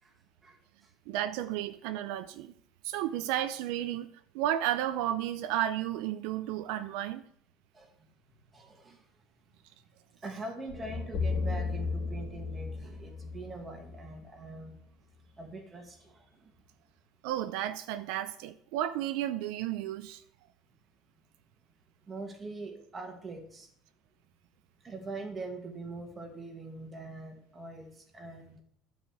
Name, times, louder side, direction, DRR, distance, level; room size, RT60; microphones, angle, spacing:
voice 1, 0.4-0.9 6.9-7.0 7.7-8.1 8.5-9.1 10.2-14.8 15.4-16.5 22.1-23.7 24.8-28.6, right 3 dB, 15° right, 1.8 m, -43 dB
voice 2, 1.1-2.5 2.8-4.1 4.3-7.2 17.2-20.2, right 12 dB, 75° right, 0.6 m, -32 dB
sound 1, 10.7-14.8, left 4 dB, 55° left, 1.8 m, -35 dB
12.0 x 5.1 x 7.9 m
cardioid pair, 180°, 0 cm